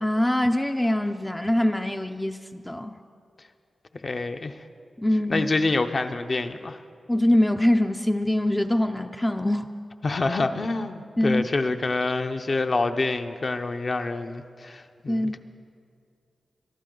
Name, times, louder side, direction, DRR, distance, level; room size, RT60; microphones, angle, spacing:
voice 1, 0.0-3.0 5.0-5.5 7.1-9.7 11.2-11.4 15.1-15.4, left 1 dB, 10° left, 5 dB, 0.4 m, -23 dB
voice 2, 4.0-4.6 5.3-6.8 10.0-15.4, left 3 dB, 45° left, 7 dB, 0.7 m, -27 dB
22.5 x 12.5 x 3.8 m, 2.3 s
wide cardioid pair, 100°, 0 cm